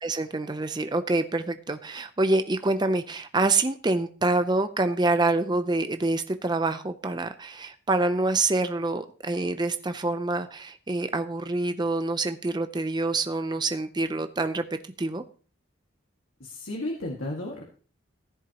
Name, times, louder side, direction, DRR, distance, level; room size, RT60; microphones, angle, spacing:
voice 1, 0.0-15.2, right 2 dB, 20° right, 9 dB, 0.5 m, -26 dB
voice 2, 16.4-17.6, left 1 dB, 70° left, -2 dB, 1.9 m, -33 dB
15.5 x 10.5 x 2.9 m, 0.39 s
head